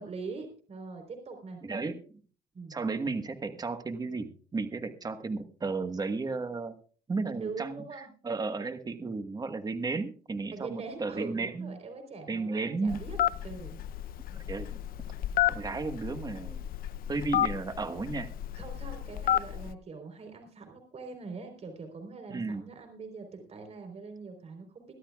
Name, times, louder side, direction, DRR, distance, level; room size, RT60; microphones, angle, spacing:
voice 1, 0.0-1.6 2.5-2.8 7.2-8.1 10.5-13.2 13.4-13.8 18.5-24.9, right 4 dB, 40° right, 5 dB, 4.0 m, -42 dB
voice 2, 1.6-2.0 2.7-6.8 7.1-11.7 12.3-13.0 14.3-14.7 15.5-16.6 17.1-18.3 22.3-22.6, right 3 dB, 25° right, 9 dB, 1.4 m, -34 dB
Telephone, 12.9-19.7, left 12 dB, 60° left, 0.6 m, -31 dB
23.0 x 13.0 x 2.4 m, 0.41 s
cardioid pair, 110°, 17 cm